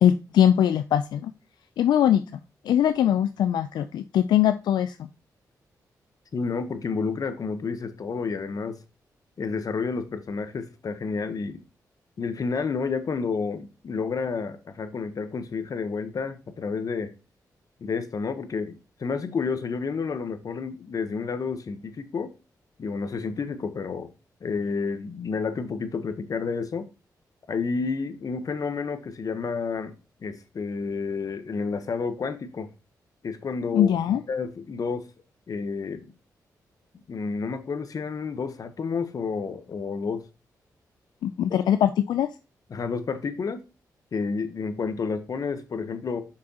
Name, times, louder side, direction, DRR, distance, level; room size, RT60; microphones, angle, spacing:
voice 1, 0.0-1.3 1.8-2.2 2.7-5.1 33.7-34.2 41.2-42.3, left 10 dB, 85° left, 0.4 m, -21 dB
voice 2, 6.3-8.8 9.4-11.6 12.2-17.1 17.8-22.3 22.8-24.1 24.4-26.9 27.5-32.7 33.2-35.1 35.5-36.1 37.1-40.2 42.7-43.6 44.1-46.2, left 5 dB, 55° left, 1.1 m, -30 dB
6.3 x 6.0 x 2.9 m
cardioid pair, 75°, 7 cm